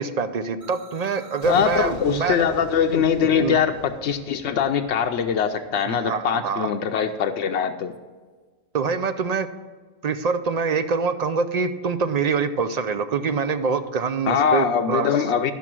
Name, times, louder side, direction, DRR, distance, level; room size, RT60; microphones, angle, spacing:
voice 1, 0.0-2.4 3.4-3.6 5.9-6.7 8.7-9.5 10.0-15.1, right 5 dB, 50° right, 10 dB, 0.5 m, -25 dB
sound 1, 0.6-6.3, equal, 15° right, 1.7 m, -45 dB
voice 2, 1.4-7.9 14.3-15.5, left 7 dB, 85° left, 4 dB, 0.9 m, -22 dB
12.5 x 5.5 x 6.1 m, 1.4 s
omnidirectional pair, 1.1 m